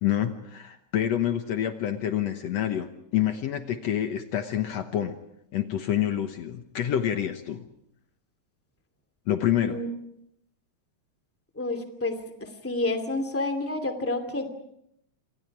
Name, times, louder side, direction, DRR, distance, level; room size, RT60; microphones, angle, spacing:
voice 1, 0.0-5.2 5.5-7.6 9.3-9.8, left 10 dB, 65° left, 7 dB, 2.1 m, -27 dB
voice 2, 11.6-14.5, left 2 dB, 5° left, 5 dB, 2.2 m, -29 dB
28.0 x 26.5 x 4.8 m, 0.75 s
omnidirectional pair, 3.4 m